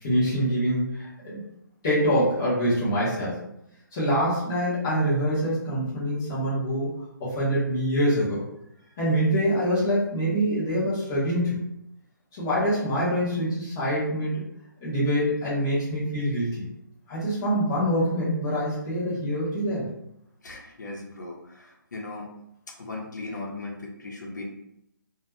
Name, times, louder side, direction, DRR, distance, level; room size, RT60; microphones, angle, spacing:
voice 1, 0.0-1.4 1.8-3.4 3.9-6.9 7.2-8.4 9.0-11.7 12.3-14.4 14.8-16.6 17.1-19.9, equal, 10° left, -11 dB, 0.4 m, -25 dB
voice 2, 20.4-22.3 22.8-24.4, left 2 dB, 60° left, -1 dB, 0.7 m, -38 dB
2.2 x 2.1 x 2.9 m, 0.78 s
hypercardioid pair, 180°, 11 cm